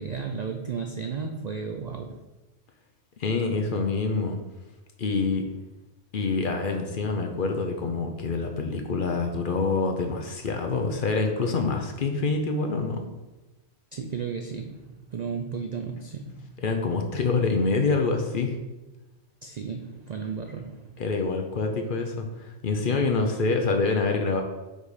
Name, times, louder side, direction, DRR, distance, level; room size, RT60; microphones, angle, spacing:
voice 1, 0.0-2.2 13.9-16.5 19.4-21.0, right 5 dB, 80° right, 4 dB, 0.3 m, -34 dB
voice 2, 3.2-4.4 5.0-5.4 6.1-13.0 16.6-18.6 21.0-24.4, left 4 dB, 55° left, 4 dB, 0.7 m, -26 dB
5.2 x 4.1 x 4.9 m, 1.1 s
omnidirectional pair, 1.3 m